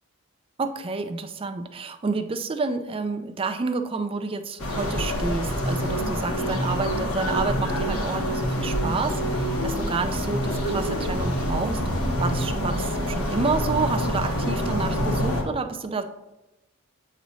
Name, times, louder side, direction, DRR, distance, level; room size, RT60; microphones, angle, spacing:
voice 1, 0.6-11.8 12.2-16.0, right 4 dB, 25° right, 8 dB, 0.4 m, -29 dB
sound 1, 4.6-15.4, left 1 dB, 75° left, 1.1 m, -27 dB
sound 2, 5.6-13.2, right 1 dB, 50° left, 1.3 m, -31 dB
8.2 x 3.1 x 4.0 m, 0.99 s
head